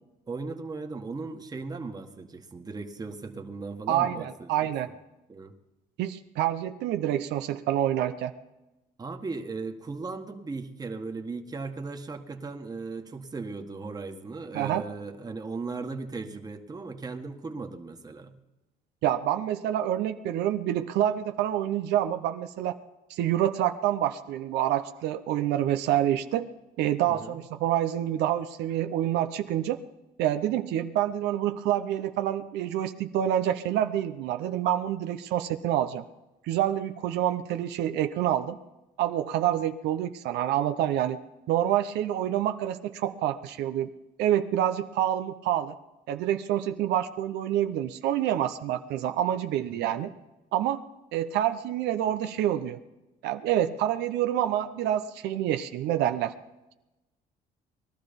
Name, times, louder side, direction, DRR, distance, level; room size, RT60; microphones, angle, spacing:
voice 1, 0.3-4.7 5.3-5.5 9.0-18.3 27.1-27.4, right 3 dB, 20° right, 5 dB, 1.5 m, -37 dB
voice 2, 3.9-4.9 6.0-8.3 14.5-14.8 19.0-22.8 23.1-26.5 26.8-29.8 30.2-36.0 36.4-38.6 39.0-41.2 41.5-43.9 44.2-45.7 46.1-50.1 50.5-50.8 51.1-52.8 53.2-56.3, right 11 dB, 85° right, 8 dB, 0.8 m, -27 dB
20.0 x 12.5 x 5.3 m, 1.0 s
cardioid pair, 110°, 17 cm